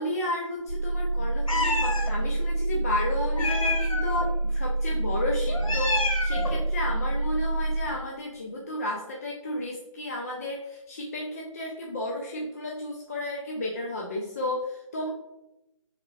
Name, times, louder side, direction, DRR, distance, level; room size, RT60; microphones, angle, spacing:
voice 1, 0.0-15.1, left 1 dB, 30° left, -2 dB, 0.5 m, -32 dB
sound 1, 0.7-7.8, right 2 dB, 45° right, 1.2 m, -27 dB
Meow, 1.5-2.1 3.3-4.3 5.5-6.6, left 2 dB, 80° left, 0.9 m, -28 dB
4.4 x 3.6 x 3.2 m, 0.91 s
figure-of-eight pair, 150°, 17 cm